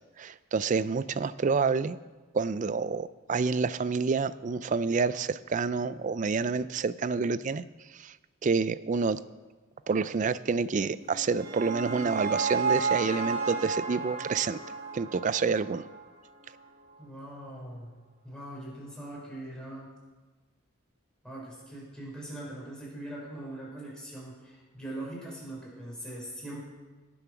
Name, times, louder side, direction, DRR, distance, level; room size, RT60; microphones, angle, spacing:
voice 1, 0.2-2.0 2.3-7.6 7.9-8.1 8.4-9.2 9.9-14.6 14.9-15.9, right 4 dB, 35° right, 16 dB, 0.4 m, -28 dB
sound 1, 11.0-16.2, right 5 dB, 50° right, 2.0 m, -32 dB
voice 2, 17.0-17.9 18.2-19.9 21.2-26.6, right 1 dB, 5° left, -5 dB, 4.5 m, -41 dB
18.0 x 7.1 x 5.9 m, 1.3 s
head